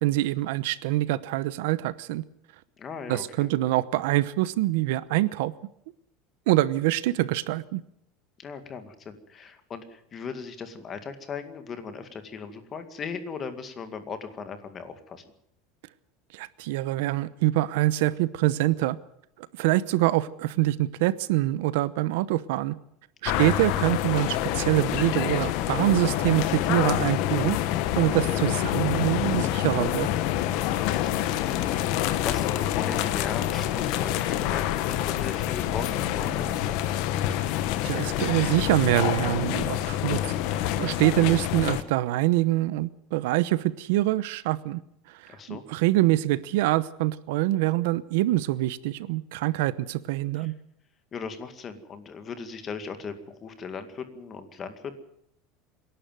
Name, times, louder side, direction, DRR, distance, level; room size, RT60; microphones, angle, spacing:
voice 1, 0.0-2.2 3.1-5.5 6.5-7.8 16.3-19.0 19.6-22.7 23.2-27.6 27.9-30.1 37.8-40.2 40.5-44.8 45.1-45.2 45.5-50.5, right 16 dB, 75° right, 17 dB, 0.9 m, -25 dB
voice 2, 2.8-3.5 8.4-15.2 23.2-23.5 30.7-36.8 41.2-41.3 45.3-45.6 50.3-50.5 51.1-54.9, left 5 dB, 25° left, 9 dB, 2.0 m, -38 dB
sound 1, 23.3-41.8, left 12 dB, 55° left, 1.4 m, -27 dB
26.0 x 11.5 x 9.2 m, 0.72 s
cardioid pair, 165°, 0 cm